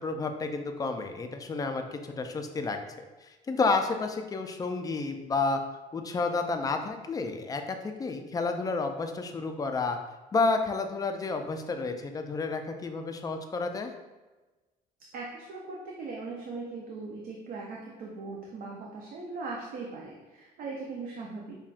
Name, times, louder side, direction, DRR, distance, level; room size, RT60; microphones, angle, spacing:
voice 1, 0.0-5.6 5.9-10.0 10.3-13.9, left 3 dB, 20° left, 5 dB, 0.3 m, -30 dB
voice 2, 15.1-21.6, right 3 dB, 55° right, -2 dB, 0.5 m, -39 dB
5.5 x 2.3 x 2.4 m, 1.2 s
cardioid pair, 110°, 17 cm